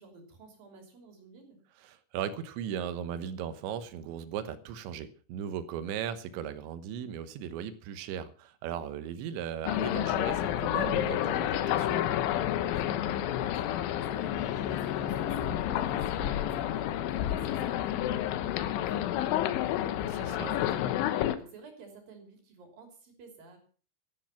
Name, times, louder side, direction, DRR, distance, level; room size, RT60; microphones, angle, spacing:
voice 1, 0.0-1.6 12.6-23.6, right 3 dB, 50° right, 4 dB, 4.6 m, -52 dB
voice 2, 1.8-12.1 20.2-20.6, right 9 dB, 80° right, 11 dB, 3.4 m, -37 dB
sound 1, 9.7-21.4, left 12 dB, 85° left, 3.4 m, -30 dB
sound 2, 10.2-17.8, left 6 dB, 60° left, 3.3 m, -41 dB
13.0 x 12.0 x 5.7 m, 0.41 s
omnidirectional pair, 5.3 m